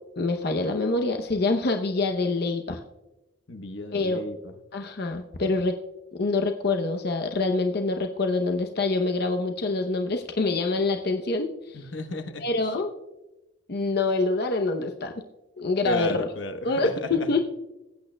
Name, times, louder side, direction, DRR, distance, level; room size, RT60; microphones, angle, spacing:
voice 1, 0.2-2.8 3.9-4.2 4.7-5.7 6.1-11.8 12.4-12.9 13.7-15.1 15.6-16.3 16.6-17.4, left 3 dB, 55° left, 4 dB, 0.7 m, -26 dB
voice 2, 3.5-4.5 11.7-12.4 15.8-17.1, left 2 dB, 80° left, 8 dB, 1.0 m, -33 dB
20.0 x 8.7 x 2.2 m, 1.0 s
head